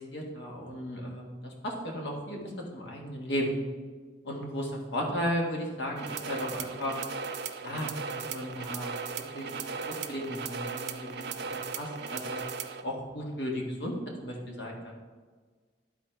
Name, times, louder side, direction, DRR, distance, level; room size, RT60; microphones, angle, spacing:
voice 1, 0.0-3.6 4.2-6.9 7.6-8.9 9.3-12.4 12.8-13.9 14.2-14.9, equal, 75° left, -1 dB, 1.6 m, -35 dB
sound 1, 6.0-12.8, right 5 dB, 65° right, 0.5 m, -37 dB
11.5 x 4.2 x 4.4 m, 1.5 s
head